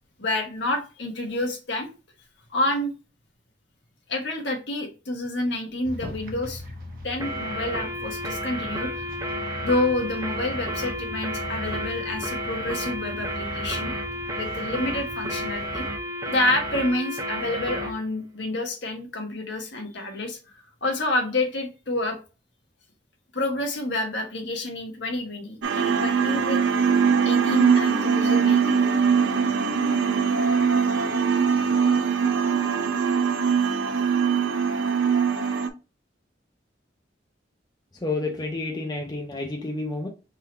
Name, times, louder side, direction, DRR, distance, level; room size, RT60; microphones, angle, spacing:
voice 1, 0.2-1.9 2.5-2.9 4.1-6.6 7.0-9.0 9.6-13.9 14.3-15.8 16.2-22.2 23.3-26.6 27.2-28.8, left 1 dB, 70° left, 1.3 m, -28 dB
sound 1, 5.8-15.9, left 1 dB, 50° right, 1.0 m, -40 dB
sound 2, 7.2-18.0, equal, 20° right, 0.7 m, -32 dB
sound 3, 25.6-35.7, right 6 dB, 85° right, 0.6 m, -22 dB
voice 2, 38.0-40.1, left 2 dB, 20° left, 0.6 m, -30 dB
3.7 x 2.8 x 4.4 m
head